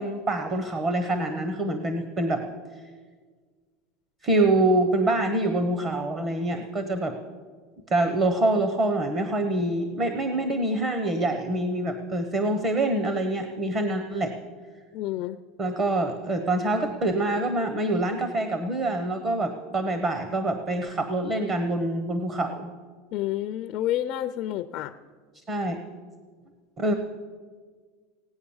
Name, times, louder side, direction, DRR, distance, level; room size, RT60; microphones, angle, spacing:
voice 1, 0.0-2.4 4.2-7.1 7.9-14.3 15.6-22.7 25.5-25.8 26.8-27.0, right 2 dB, 20° right, 7 dB, 0.9 m, -25 dB
voice 2, 14.9-15.4 23.1-24.9, left 13 dB, 40° left, 9 dB, 0.4 m, -29 dB
17.5 x 9.3 x 7.1 m, 1.6 s
supercardioid pair, 170°, 0 cm